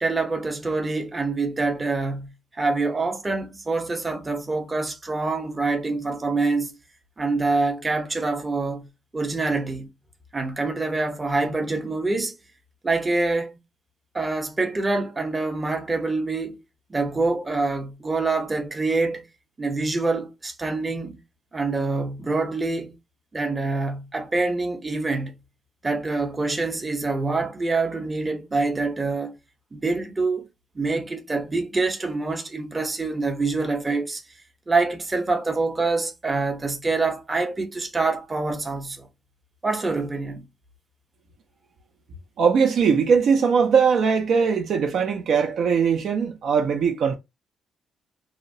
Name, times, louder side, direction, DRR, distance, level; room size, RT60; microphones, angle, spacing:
voice 1, 0.0-6.7 7.2-8.9 9.1-9.9 10.3-12.3 12.8-13.6 14.1-16.6 16.9-19.3 19.6-21.2 21.5-23.0 23.3-25.3 25.8-29.3 29.7-30.5 30.7-34.2 34.7-39.1 39.6-40.4, right 3 dB, 25° right, 0.7 m, -25 dB
voice 2, 42.4-47.1, right 6 dB, 65° right, 0.5 m, -20 dB
2.7 x 2.0 x 2.6 m
cardioid pair, 90°, 0 cm